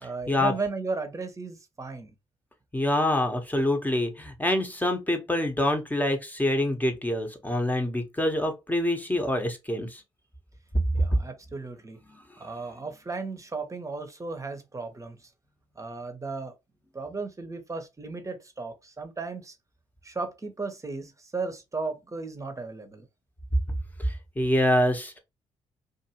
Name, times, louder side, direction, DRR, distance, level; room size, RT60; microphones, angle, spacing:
voice 1, 0.0-2.1 10.9-12.0 12.4-15.3 15.8-16.6 16.9-19.6 20.0-23.1, right 4 dB, 25° right, 0.9 m, -35 dB
voice 2, 2.7-10.0 23.7-23.8 24.4-25.2, left 1 dB, 10° left, 1.0 m, -26 dB
2.6 x 2.6 x 2.9 m
supercardioid pair, 55°, 13 cm